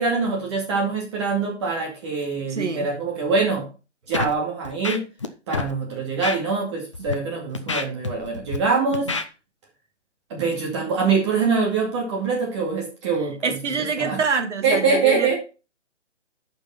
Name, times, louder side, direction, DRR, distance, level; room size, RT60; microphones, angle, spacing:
voice 1, 0.0-3.7 4.1-5.0 5.5-9.1 10.3-13.3 13.8-14.2 14.6-15.3, right 4 dB, 25° right, 2.3 m, -24 dB
voice 2, 2.5-2.9 13.4-15.3, right 5 dB, 70° right, 1.9 m, -26 dB
Scratching (performance technique), 4.1-4.3 4.6-5.3 5.5-5.7 6.2-6.4 6.9-7.1 7.5-8.6 8.9-9.2, left 4 dB, 25° left, 0.6 m, -27 dB
8.7 x 5.4 x 5.8 m
hypercardioid pair, 165°, 36 cm